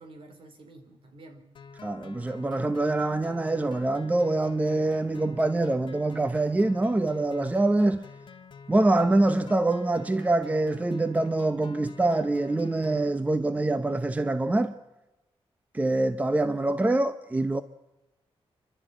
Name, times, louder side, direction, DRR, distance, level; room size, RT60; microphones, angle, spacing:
voice 1, 0.0-1.5, right 2 dB, 60° right, 4.2 m, -49 dB
sound 1, 1.5-13.1, left 5 dB, 50° left, 1.9 m, -48 dB
voice 2, 1.8-8.1 8.7-14.8 15.7-17.6, right 2 dB, 15° right, 0.7 m, -25 dB
29.0 x 12.5 x 9.1 m
wide cardioid pair, 150°, 10 cm